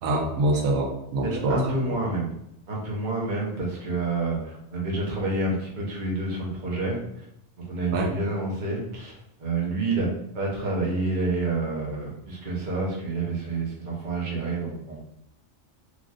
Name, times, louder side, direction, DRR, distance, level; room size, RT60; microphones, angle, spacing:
voice 1, 0.0-1.6 7.9-8.1, right 2 dB, 80° right, 0 dB, 1.0 m, -25 dB
voice 2, 1.2-2.3 2.7-7.2 7.6-10.1 10.3-15.0, right 2 dB, 40° right, -3 dB, 0.8 m, -28 dB
3.2 x 2.5 x 2.4 m, 0.77 s
omnidirectional pair, 1.4 m